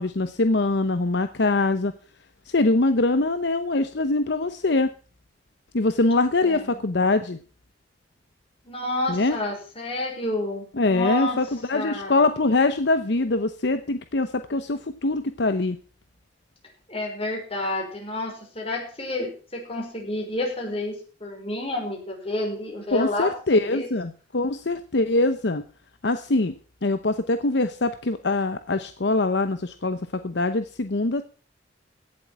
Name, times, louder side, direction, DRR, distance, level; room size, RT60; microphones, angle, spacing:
voice 1, 0.0-1.9 2.5-4.9 5.7-7.4 9.1-9.4 10.7-15.8 22.9-25.6 26.0-26.5 26.8-31.2, left 2 dB, 70° left, 9 dB, 0.9 m, -23 dB
voice 2, 6.4-6.8 8.6-11.4 11.7-12.2 16.9-23.3 23.7-23.9, left 1 dB, 35° left, 0 dB, 5.6 m, -30 dB
16.5 x 7.7 x 6.0 m, 0.39 s
head